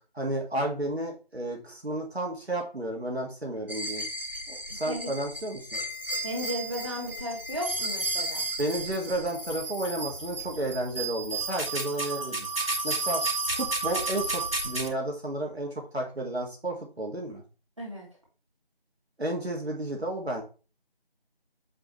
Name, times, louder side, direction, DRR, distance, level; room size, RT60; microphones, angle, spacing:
voice 1, 0.1-4.0 4.5-5.8 8.6-12.5 12.8-13.2 13.5-17.4 19.2-20.4, right 1 dB, 90° right, 0 dB, 2.3 m, -32 dB
sound 1, 3.7-14.9, right 2 dB, 65° right, 2.5 m, -32 dB
voice 2, 6.2-8.5 17.8-18.1, equal, 30° right, -3 dB, 2.4 m, -35 dB
7.5 x 4.9 x 3.2 m, 0.35 s
figure-of-eight pair, 175°, 31 cm